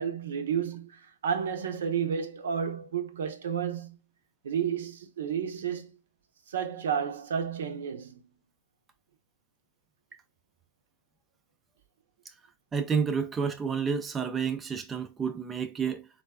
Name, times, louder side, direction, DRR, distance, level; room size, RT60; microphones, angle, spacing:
voice 1, 0.0-4.0 4.4-5.9 6.5-8.2, right 7 dB, 70° right, 0.6 m, -31 dB
voice 2, 12.7-16.1, right 6 dB, 15° right, 0.4 m, -30 dB
3.8 x 2.2 x 2.2 m
hypercardioid pair, 120°, 0 cm